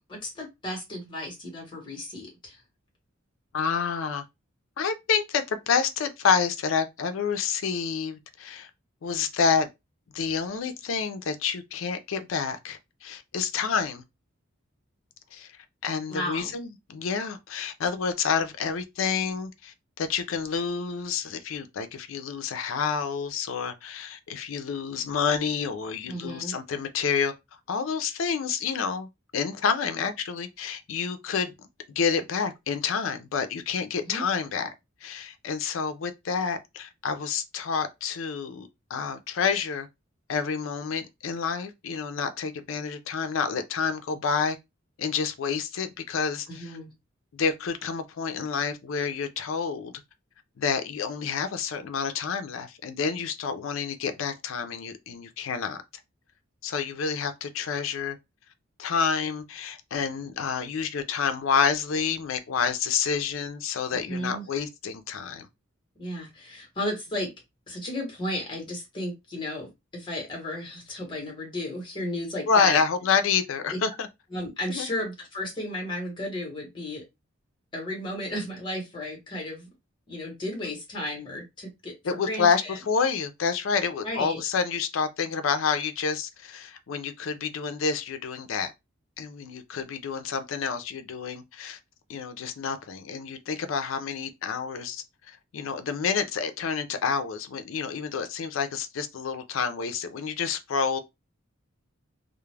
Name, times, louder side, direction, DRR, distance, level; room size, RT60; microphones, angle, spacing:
voice 1, 0.0-2.6 16.1-16.5 26.1-26.6 34.0-34.2 46.5-46.9 64.1-64.5 66.0-67.3 67.7-72.8 73.7-73.8 74.3-77.0 77.7-79.7 80.1-82.8 84.0-84.4, left 1 dB, 25° left, 1.0 m, -34 dB
voice 2, 3.5-4.2 4.8-8.7 9.0-9.7 10.1-14.0 15.3-15.5 15.8-27.3 27.7-31.7 32.0-34.7 35.0-39.9 40.3-44.6 45.0-46.7 47.3-49.9 50.6-55.8 56.6-58.2 58.8-65.5 72.5-74.1 74.7-74.9 82.0-88.7 89.2-91.8 92.1-95.0 95.5-101.0, left 6 dB, 75° left, 0.4 m, -28 dB
2.3 x 2.0 x 3.1 m
head